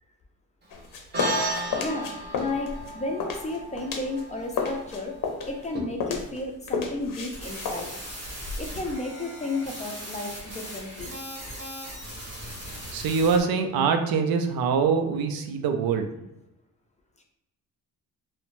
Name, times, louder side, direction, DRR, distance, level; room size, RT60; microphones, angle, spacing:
sound 1, 0.7-4.2 4.5-8.9, left 5 dB, 65° left, 0.6 m, -33 dB
sound 2, 1.1-5.8, right 1 dB, 30° right, 0.7 m, -34 dB
voice 1, 1.5-5.1 5.5-7.9 8.6-11.2, left 2 dB, 20° left, 1 dB, 0.4 m, -33 dB
sound 3, 7.2-13.4, equal, 60° right, 1.3 m, -39 dB
voice 2, 12.9-16.1, right 5 dB, 80° right, 6 dB, 0.5 m, -24 dB
2.9 x 2.1 x 2.5 m, 0.93 s
cardioid pair, 90°, 35 cm